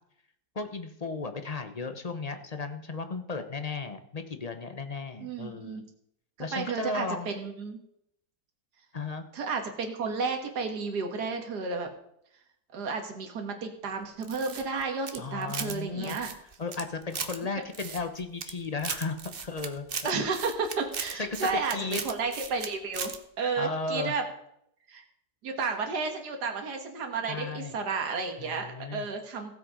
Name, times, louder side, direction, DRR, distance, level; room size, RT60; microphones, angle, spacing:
voice 1, 0.5-5.8 6.4-7.3 8.9-9.2 15.2-16.2 16.6-20.1 21.2-21.5 21.7-22.0 23.6-24.1 27.3-27.7 28.4-29.1, left 4 dB, 30° left, 8 dB, 0.8 m, -35 dB
voice 2, 5.2-5.8 6.5-7.8 9.3-11.9 12.7-16.3 20.0-24.3 24.9-25.0 25.4-29.6, right 4 dB, 75° right, 4 dB, 2.1 m, -32 dB
sound 1, 14.2-15.8 16.0-17.4 17.7-18.5 18.8-22.7 22.9-23.2, right 6 dB, 40° right, 1.0 m, -37 dB
16.0 x 7.7 x 4.9 m, 0.74 s
omnidirectional pair, 1.7 m